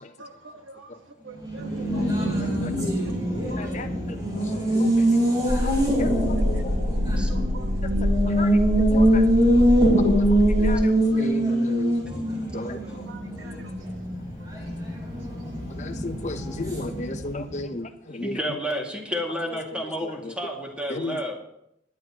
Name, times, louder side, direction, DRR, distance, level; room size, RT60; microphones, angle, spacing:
voice 1, 0.2-1.0 1.2-2.6 3.5-3.8 5.3-5.8 6.5-6.6 7.1-9.1 9.4-9.7 10.6-10.8 11.1-11.4 13.1-13.7 14.4-14.5 15.2-15.3, right 3 dB, 90° right, 6 dB, 1.4 m, -46 dB
Race car auto racing, 1.4-17.6, right 1 dB, 25° right, 4.4 m, -24 dB
voice 2, 2.2-3.0 3.6-3.9 4.5-4.9 5.6-6.7 8.3-8.5 8.9-9.2 10.0-10.3 10.6-10.8 11.2-11.9 12.5-12.8 15.8-18.4 19.7-20.3 20.9-21.3, left 2 dB, 40° left, 8 dB, 0.7 m, -34 dB
sound 1, 5.5-10.8, left 1 dB, 60° right, 1.4 m, -26 dB
voice 3, 18.2-21.3, equal, 5° right, 0 dB, 2.0 m, -30 dB
20.0 x 10.5 x 2.9 m, 0.78 s
head